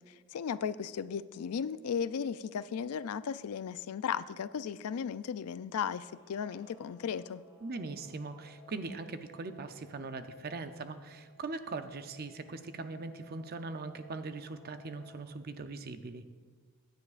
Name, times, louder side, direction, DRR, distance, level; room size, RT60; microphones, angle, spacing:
voice 1, 0.1-7.4, left 7 dB, 80° left, 15 dB, 0.4 m, -36 dB
Guitar, 5.8-15.3, right 1 dB, 10° right, 3.6 m, -60 dB
voice 2, 7.6-16.2, right 3 dB, 45° right, 9 dB, 0.6 m, -41 dB
16.5 x 10.5 x 2.5 m, 1.5 s
head